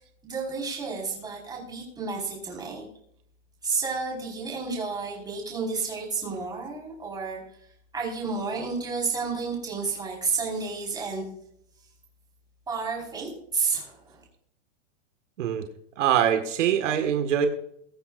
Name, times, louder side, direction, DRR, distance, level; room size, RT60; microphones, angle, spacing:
voice 1, 0.2-2.8 3.6-7.4 7.9-11.2 12.7-14.2, right 4 dB, 10° right, -2 dB, 4.7 m, -31 dB
voice 2, 16.0-17.5, right 9 dB, 75° right, 6 dB, 1.8 m, -23 dB
22.5 x 9.1 x 2.5 m, 0.72 s
supercardioid pair, 155°, 37 cm